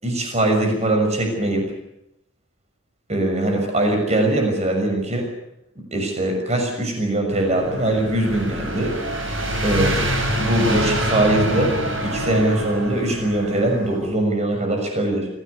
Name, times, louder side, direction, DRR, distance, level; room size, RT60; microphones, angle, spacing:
voice 1, 0.0-1.7 3.1-5.3 5.9-8.9 9.6-10.1 10.4-11.7 12.0-15.3, right 1 dB, 30° right, 3 dB, 6.2 m, -21 dB
sound 1, 7.3-14.0, equal, 60° right, 7.5 m, -25 dB
25.0 x 16.5 x 9.6 m, 0.83 s
head